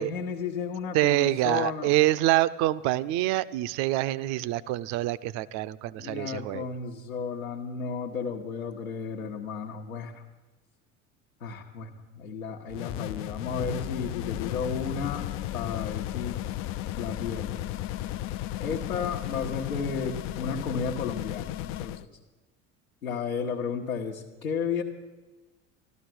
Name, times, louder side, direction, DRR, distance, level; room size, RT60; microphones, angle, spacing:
voice 1, 0.0-1.9 6.0-10.2 11.4-15.3 15.5-16.4 17.0-17.6 18.6-22.1 23.0-24.8, left 6 dB, 75° left, -3 dB, 1.2 m, -33 dB
voice 2, 0.9-6.7, right 15 dB, 45° right, 17 dB, 0.6 m, -26 dB
sound 1, 12.7-22.1, left 13 dB, 35° left, 0.4 m, -34 dB
14.0 x 12.5 x 6.1 m, 1.2 s
figure-of-eight pair, 65°, 41 cm